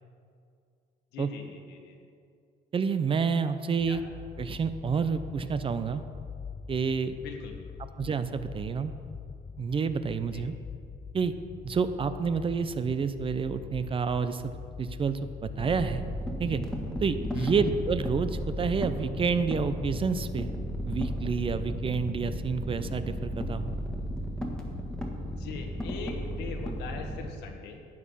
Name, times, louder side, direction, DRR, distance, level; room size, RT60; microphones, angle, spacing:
voice 1, 1.1-2.0 3.9-4.0 7.2-7.7 10.3-10.4 17.3-17.6 25.2-27.9, left 5 dB, 85° left, 3 dB, 1.6 m, -42 dB
voice 2, 2.7-4.0 4.4-6.0 6.7-7.2 8.0-8.9 9.6-10.5 11.1-11.3 11.6-14.5 14.8-16.1 16.4-16.6 17.0-20.5 20.8-23.7, right 5 dB, 30° right, 11 dB, 0.6 m, -29 dB
sound 1, 3.8-22.4, left 6 dB, 25° left, 0.4 m, -44 dB
sound 2, 15.6-27.3, equal, 5° left, 1.6 m, -34 dB
12.5 x 8.5 x 5.6 m, 2.3 s
cardioid pair, 110°, 17 cm